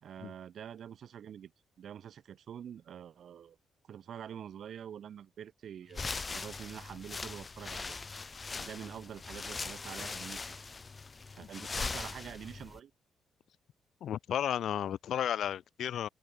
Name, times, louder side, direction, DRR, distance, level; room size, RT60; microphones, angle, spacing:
voice 1, 0.0-1.5 1.8-3.6 3.9-8.0 8.6-10.6 11.4-12.9, right 9 dB, 60° right, 1.5 m, -46 dB
sound 1, 5.9-12.8, left 4 dB, 35° left, 3.0 m, -40 dB
voice 2, 14.0-16.1, left 10 dB, 65° left, 0.4 m, -33 dB
hypercardioid pair, 45°, 0 cm